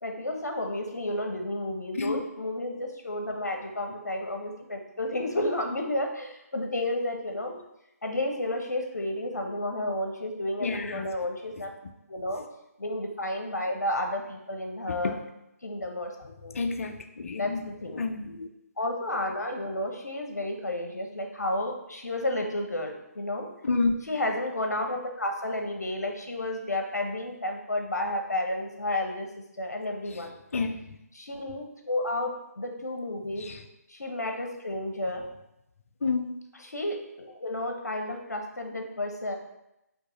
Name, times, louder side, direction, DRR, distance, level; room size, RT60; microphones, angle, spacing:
voice 1, 0.0-7.6 8.0-11.8 12.1-12.4 12.8-15.2 15.6-16.5 17.4-18.0 18.8-23.5 24.1-29.3 29.6-30.3 31.1-33.5 33.9-35.2 36.7-39.4, left 1 dB, 80° left, 3 dB, 0.9 m, -31 dB
voice 2, 10.6-11.1 11.6-11.7 14.9-15.1 16.5-18.5 23.6-23.9 30.1-31.0 33.4-33.6 36.0-36.3, left 4 dB, 55° left, 7 dB, 0.5 m, -30 dB
4.5 x 3.0 x 3.8 m, 0.86 s
figure-of-eight pair, 145°, 9 cm